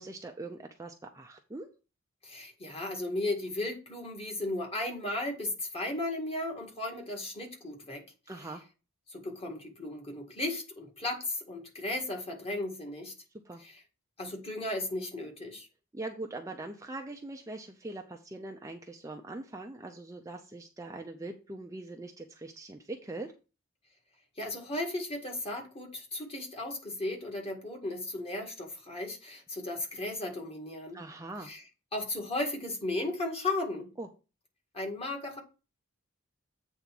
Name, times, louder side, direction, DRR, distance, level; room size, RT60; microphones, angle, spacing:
voice 1, 0.0-1.7 8.3-8.6 13.4-13.6 15.9-23.3 30.9-31.5 34.0-34.1, right 2 dB, 15° right, 0.6 m, -42 dB
voice 2, 2.2-8.0 9.1-13.1 13.6-13.8 14.2-15.7 24.4-31.0 31.4-31.6 31.9-33.9 34.7-35.4, left 2 dB, 25° left, 1.9 m, -35 dB
8.3 x 3.5 x 5.9 m
head